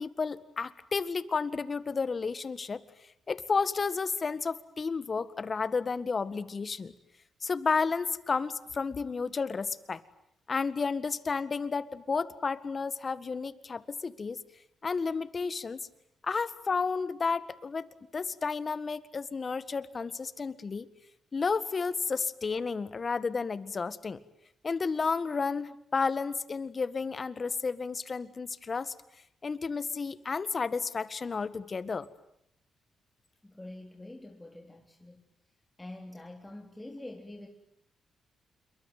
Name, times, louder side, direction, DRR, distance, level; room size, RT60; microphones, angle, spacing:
voice 1, 0.0-2.8 3.3-6.9 7.4-10.0 10.5-14.4 14.8-15.9 16.2-17.9 18.1-20.9 21.3-24.2 24.6-28.9 29.4-32.1, left 4 dB, 45° left, 15 dB, 1.7 m, -32 dB
voice 2, 33.4-35.3 35.8-37.5, left 1 dB, 15° left, 2 dB, 3.7 m, -45 dB
27.5 x 23.0 x 9.3 m, 0.75 s
supercardioid pair, 50°, 0 cm